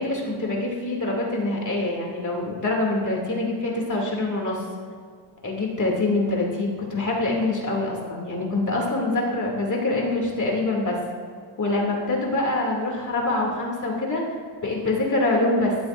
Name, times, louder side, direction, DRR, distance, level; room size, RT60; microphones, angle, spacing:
voice 1, 0.0-4.6 5.4-11.0 11.6-14.2 14.6-15.7, left 2 dB, 40° left, -2 dB, 2.7 m, -25 dB
16.0 x 13.0 x 2.6 m, 2.1 s
wide cardioid pair, 125°, 47 cm